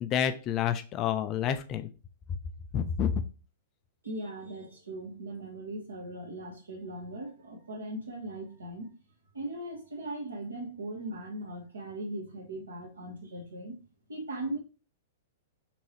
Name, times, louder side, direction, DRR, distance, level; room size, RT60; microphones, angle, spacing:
voice 1, 0.0-1.9 2.7-3.2, left 8 dB, 30° left, 9 dB, 0.4 m, -29 dB
voice 2, 4.0-8.9 9.3-13.8 14.1-14.6, right 1 dB, 70° right, 1 dB, 1.3 m, -39 dB
3.7 x 3.0 x 3.0 m, 0.34 s
figure-of-eight pair, 105°, 0 cm